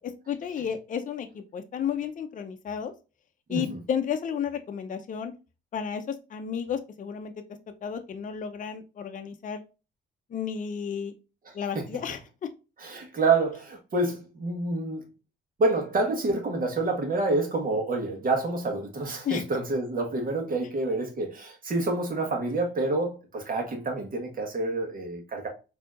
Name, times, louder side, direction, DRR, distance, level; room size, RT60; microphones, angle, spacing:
voice 1, 0.3-2.9 3.5-5.3 5.7-7.3 7.8-9.6 10.3-11.1 11.5-12.5 19.2-19.4, left 8 dB, 40° left, 0.5 m, -32 dB
voice 2, 12.8-15.0 15.6-25.5, right 3 dB, 45° right, 1.3 m, -28 dB
4.2 x 2.8 x 2.4 m
cardioid pair, 90°, 20 cm